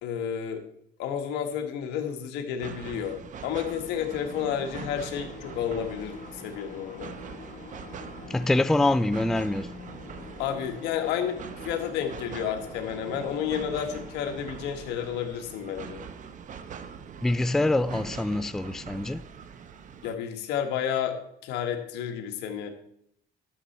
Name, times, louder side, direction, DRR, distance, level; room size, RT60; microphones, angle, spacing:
voice 1, 0.0-0.6 1.0-7.1 10.4-16.0 20.0-21.2 21.4-22.7, left 8 dB, 90° left, 1.5 m, -31 dB
Train Track Joints Slow (Loop), 2.6-20.1, right 7 dB, 50° right, 0.9 m, -43 dB
Detuned horn, 3.7-17.4, left 5 dB, 50° left, 1.1 m, -47 dB
voice 2, 8.3-9.7 17.2-19.2, left 2 dB, 5° left, 0.3 m, -25 dB
12.5 x 6.9 x 4.2 m
cardioid pair, 110°, 17 cm